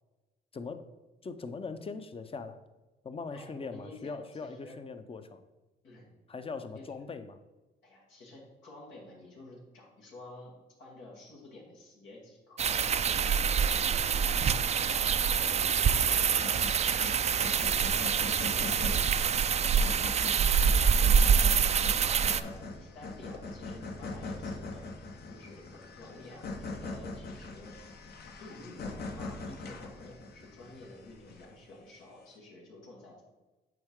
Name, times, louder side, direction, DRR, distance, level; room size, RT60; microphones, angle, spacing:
voice 1, 0.5-0.9 1.2-2.6 3.0-5.4 6.3-7.4, left 4 dB, 30° left, 10 dB, 0.6 m, -40 dB
voice 2, 3.3-4.8 5.8-6.0 6.7-6.8 7.8-10.5 10.8-13.9 14.4-16.6 17.0-21.5 22.0-24.8 25.3-27.7 28.4-33.2, left 2 dB, 90° left, -3 dB, 1.8 m, -50 dB
sound 1, 12.6-22.4, right 7 dB, 35° right, 0.4 m, -26 dB
sound 2, 16.3-31.7, left 3 dB, 55° left, 0.9 m, -42 dB
7.7 x 4.5 x 3.7 m, 1.1 s
cardioid pair, 75°, 19 cm